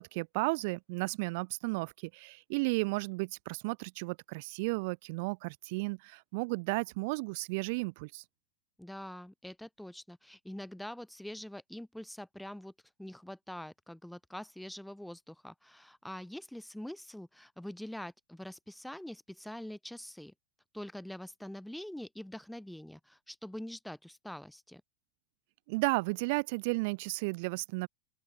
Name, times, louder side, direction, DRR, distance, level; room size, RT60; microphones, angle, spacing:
voice 1, 0.0-8.2 25.7-27.9, right 27 dB, 50° right, 0.4 m, -33 dB
voice 2, 8.8-12.7 13.0-20.3 20.7-24.8, left 1 dB, ahead, 2.4 m, -44 dB
open air
figure-of-eight pair, 90°, 0 cm